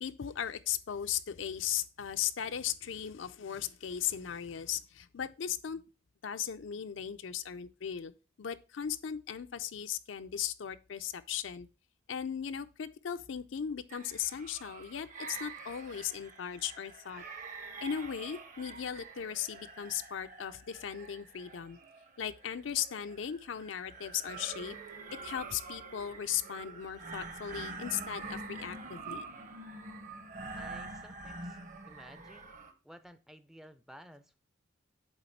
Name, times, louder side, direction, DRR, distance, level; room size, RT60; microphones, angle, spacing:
voice 1, 0.0-5.8 6.2-8.1 8.4-11.7 12.1-17.2 17.8-21.8 22.2-24.8 25.2-29.3, left 9 dB, 75° left, 0.5 m, -37 dB
sound 1, 13.9-32.7, right 3 dB, 45° right, 0.8 m, -46 dB
voice 2, 30.5-31.6 31.9-34.4, equal, ahead, 0.4 m, -54 dB
8.1 x 3.5 x 4.4 m
head